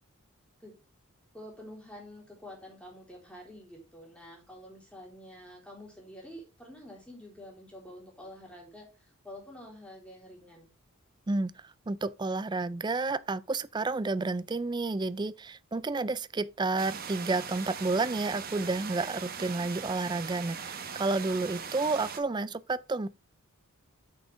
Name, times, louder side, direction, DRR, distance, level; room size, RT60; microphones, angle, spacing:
voice 1, 1.3-10.7, left 1 dB, 5° left, 3.5 m, -48 dB
voice 2, 11.3-23.1, right 3 dB, 20° right, 0.3 m, -31 dB
sound 1, 16.8-22.2, right 6 dB, 40° right, 1.0 m, -40 dB
8.6 x 6.3 x 3.3 m
head